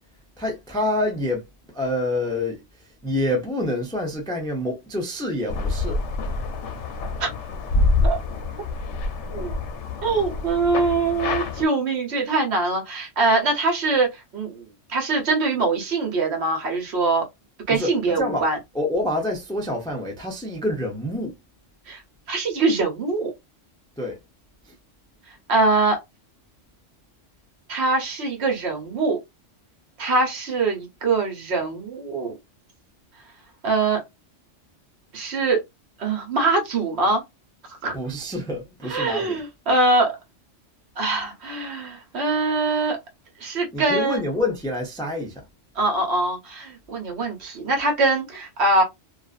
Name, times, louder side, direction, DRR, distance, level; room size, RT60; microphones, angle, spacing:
voice 1, 0.4-2.6 3.0-6.0 17.7-18.5 18.7-21.3 24.0-24.2 37.9-39.4 43.7-45.4, left 1 dB, 5° left, 0.3 m, -27 dB
sound 1, 5.5-11.6, left 3 dB, 75° left, 0.8 m, -26 dB
voice 2, 10.0-14.6 14.9-17.2 17.7-18.6 21.9-22.0 22.3-23.3 25.5-26.0 27.7-29.2 30.0-32.3 33.6-34.0 35.1-35.6 36.0-37.2 37.8-37.9 38.8-40.2 41.0-43.0 43.4-44.2 45.7-48.8, right 3 dB, 65° right, 1.1 m, -23 dB
2.4 x 2.4 x 2.3 m
omnidirectional pair, 1.3 m